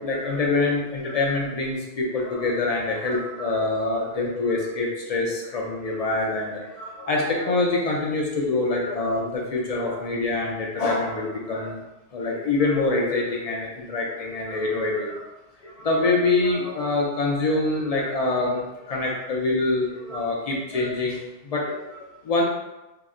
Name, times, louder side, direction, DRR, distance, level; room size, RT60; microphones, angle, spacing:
voice 1, 0.0-11.8 12.1-15.3 15.6-22.4, left 3 dB, 55° left, -2 dB, 0.4 m, -25 dB
2.8 x 2.1 x 3.5 m, 1.0 s
omnidirectional pair, 1.1 m